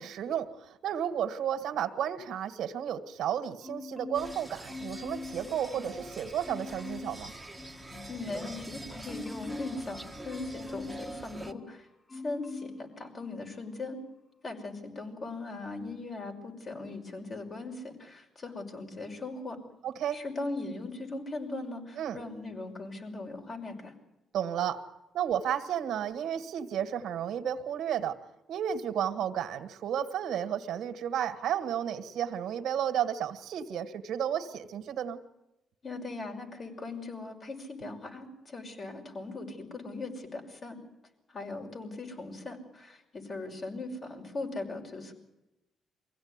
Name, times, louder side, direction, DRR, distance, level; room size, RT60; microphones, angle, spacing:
voice 1, 0.0-7.3 19.8-20.2 22.0-22.2 24.3-24.8 25.1-28.2 28.5-35.2, right 9 dB, 75° right, 10 dB, 1.7 m, -32 dB
Marimba xylophone, 3.6-4.4 4.7-6.1 6.4-7.2 7.6-11.7 12.1-12.8 13.2-13.4, left 3 dB, 25° left, 4.9 m, -43 dB
sound 1, 4.1-11.5, right 2 dB, 5° right, 1.6 m, -45 dB
voice 2, 8.1-14.0 14.4-19.6 20.1-23.9 35.8-40.8 41.3-45.1, left 3 dB, 40° left, 2 dB, 5.7 m, -39 dB
23.5 x 16.5 x 9.7 m, 0.93 s
cardioid pair, 90°, 0 cm